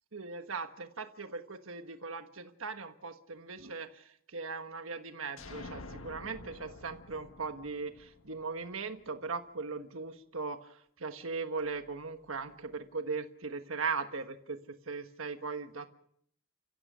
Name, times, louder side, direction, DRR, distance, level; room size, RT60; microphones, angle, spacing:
voice 1, 0.1-15.9, right 4 dB, 80° right, 7 dB, 1.5 m, -39 dB
sound 1, 5.4-9.1, left 2 dB, 90° left, 1.6 m, -49 dB
30.0 x 16.0 x 6.3 m, 0.68 s
head